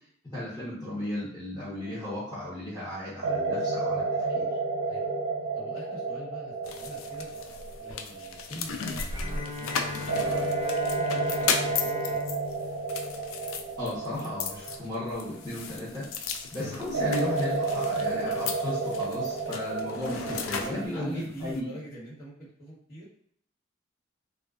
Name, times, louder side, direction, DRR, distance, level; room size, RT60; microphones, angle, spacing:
voice 1, 0.3-4.0 4.3-4.5 13.8-21.7, left 1 dB, 20° left, -11 dB, 0.8 m, -35 dB
sound 1, 1.9-2.3 3.2-9.2 10.1-16.1 16.9-20.9, right 3 dB, 75° right, 0.6 m, -31 dB
voice 2, 4.8-7.3 7.8-12.2 20.5-23.0, right 1 dB, 60° left, -13 dB, 1.3 m, -44 dB
sound 2, 6.6-21.6, left 5 dB, 90° left, 0.3 m, -36 dB
Bowed string instrument, 9.1-14.0, left 2 dB, 25° right, 0.6 m, -38 dB
2.4 x 2.3 x 2.3 m, 0.66 s
head